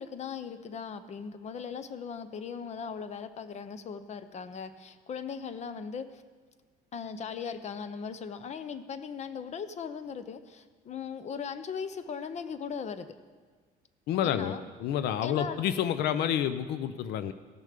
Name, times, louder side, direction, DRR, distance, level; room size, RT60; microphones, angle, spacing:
voice 1, 0.0-6.2 6.9-13.1 14.2-14.6 15.2-15.6, left 6 dB, 40° left, 12 dB, 0.7 m, -38 dB
voice 2, 14.1-17.3, left 9 dB, 80° left, 12 dB, 0.5 m, -29 dB
15.5 x 6.5 x 5.1 m, 1.5 s
cardioid pair, 110°, 17 cm